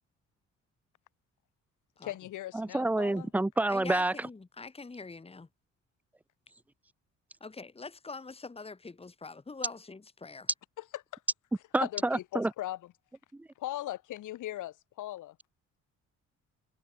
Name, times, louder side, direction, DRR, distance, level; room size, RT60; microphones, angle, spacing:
voice 1, 2.0-3.3 10.8-11.2 11.8-12.9 13.5-15.4, left 14 dB, 85° left, 4.7 m, -39 dB
voice 2, 2.5-4.1 11.7-12.5 13.3-13.5, right 2 dB, 5° right, 0.4 m, -28 dB
voice 3, 3.7-5.5 7.4-10.5, left 4 dB, 20° left, 1.9 m, -44 dB
cardioid pair, 90°, 30 cm